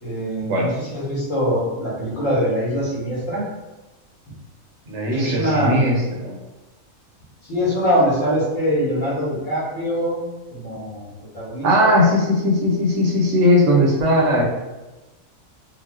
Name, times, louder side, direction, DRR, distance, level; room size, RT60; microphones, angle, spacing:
voice 1, 0.0-3.4 5.1-5.8 7.5-10.2 10.5-11.1 11.3-12.0, equal, 65° left, -7 dB, 1.5 m, -23 dB
voice 2, 4.9-6.4 11.6-14.4, left 1 dB, 65° right, -2 dB, 0.9 m, -18 dB
4.0 x 2.0 x 2.4 m, 1.1 s
omnidirectional pair, 1.4 m